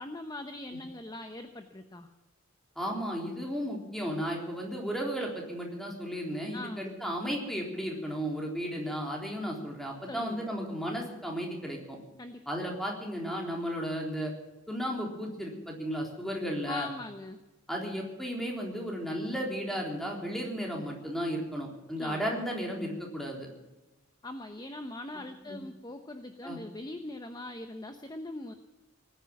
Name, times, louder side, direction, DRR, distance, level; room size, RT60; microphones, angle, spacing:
voice 1, 0.0-2.1 6.5-6.9 10.1-10.5 12.2-12.4 16.6-17.4 22.0-22.2 24.2-28.5, left 2 dB, 20° left, 7 dB, 0.9 m, -41 dB
voice 2, 2.8-12.0 12.5-14.3 14.7-16.9 17.7-23.5 25.4-25.6 26.4-26.6, equal, ahead, -1 dB, 3.8 m, -34 dB
19.0 x 10.0 x 7.2 m, 1.1 s
head